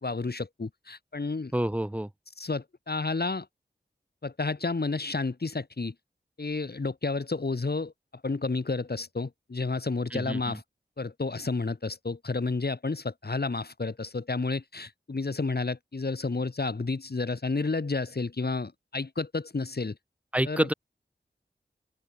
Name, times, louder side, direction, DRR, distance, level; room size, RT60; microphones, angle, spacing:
voice 1, 0.0-1.5 2.4-3.5 4.2-5.9 6.4-7.9 8.2-10.6 11.0-20.0 20.4-20.7, left 3 dB, 60° left, 1.7 m, -31 dB
voice 2, 1.5-2.1 10.1-10.6 20.3-20.7, right 1 dB, 5° right, 0.4 m, -28 dB
wide cardioid pair, 45°, 19 cm